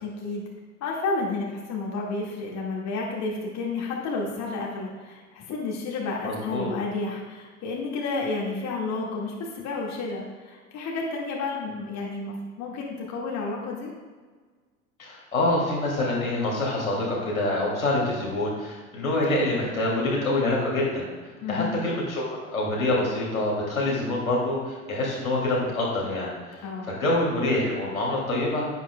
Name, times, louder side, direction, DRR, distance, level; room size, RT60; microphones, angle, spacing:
voice 1, 0.0-0.5 0.8-13.9 21.4-21.8 26.6-26.9, left 3 dB, 40° left, -2 dB, 2.0 m, -31 dB
voice 2, 6.2-6.7 15.0-21.0 21.5-22.2 22.5-26.6 26.8-28.7, left 2 dB, 85° left, -4 dB, 2.6 m, -26 dB
10.5 x 9.9 x 2.3 m, 1.4 s
figure-of-eight pair, 75°, 41 cm